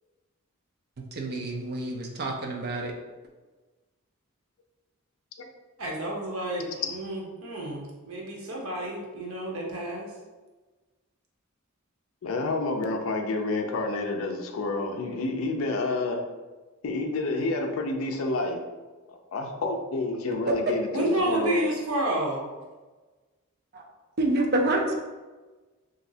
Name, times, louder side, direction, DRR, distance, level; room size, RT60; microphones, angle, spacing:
voice 1, 1.2-2.9 24.2-25.0, right 2 dB, 45° right, 1 dB, 0.5 m, -27 dB
voice 2, 5.8-10.1 20.9-22.5, right 1 dB, 80° right, -2 dB, 0.8 m, -30 dB
voice 3, 12.2-16.2 16.8-18.6 19.1-21.6, left 2 dB, 70° left, 3 dB, 0.4 m, -29 dB
3.0 x 2.6 x 2.7 m, 1.3 s
head